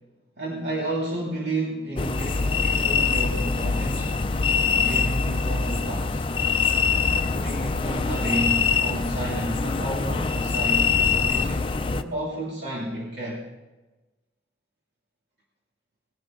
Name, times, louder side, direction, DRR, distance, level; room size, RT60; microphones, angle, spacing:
voice 1, 0.4-4.3 4.8-6.2 7.3-13.4, right 1 dB, 70° right, -6 dB, 2.8 m, -31 dB
sound 1, 2.0-12.0, left 5 dB, 30° left, 0.4 m, -24 dB
19.5 x 11.0 x 3.8 m, 1.1 s
head